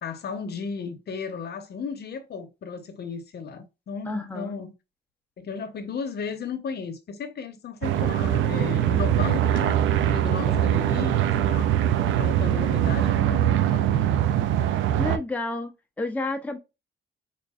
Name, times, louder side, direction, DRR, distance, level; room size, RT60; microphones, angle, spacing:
voice 1, 0.0-4.7 5.4-11.2 11.5-11.7 12.2-14.2, left 5 dB, 55° left, 0.8 m, -34 dB
voice 2, 4.1-4.5 10.3-10.6 15.0-15.7 16.0-16.6, left 2 dB, 5° left, 0.7 m, -30 dB
sound 1, 7.8-15.2, right 11 dB, 80° right, 0.5 m, -22 dB
4.5 x 2.5 x 2.3 m
cardioid pair, 90°, 20 cm